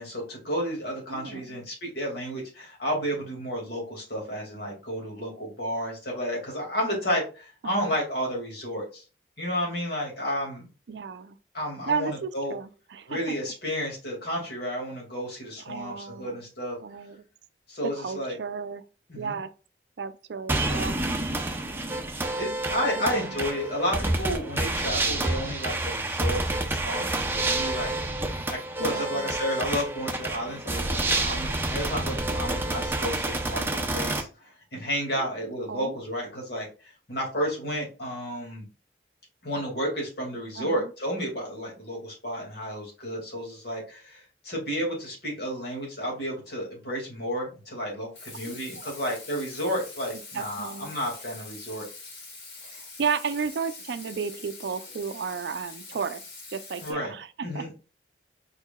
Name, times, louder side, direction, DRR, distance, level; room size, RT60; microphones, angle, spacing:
voice 1, 0.0-9.0 9.4-10.7 11.5-12.5 13.1-16.8 17.7-18.4 19.1-19.4 21.4-21.7 22.2-38.6 39.4-51.9 56.8-57.1 57.4-57.7, equal, 60° left, 2.2 m, -32 dB
voice 2, 1.1-1.6 7.6-7.9 10.9-11.4 11.9-13.2 15.6-16.4 16.8-17.2 17.8-18.8 19.2-19.5 20.0-21.0 23.0-23.5 28.8-29.3 35.2-35.3 35.7-35.9 40.6-40.9 48.4-48.6 48.8-48.9 50.3-50.9 52.6-56.2 56.5-57.7, right 5 dB, 70° right, 0.4 m, -33 dB
sound 1, 20.5-34.2, right 2 dB, 10° right, 0.6 m, -28 dB
Water tap faucet / Sink (filling or washing), 48.1-56.9, left 3 dB, 90° left, 1.7 m, -44 dB
4.7 x 4.6 x 2.3 m
head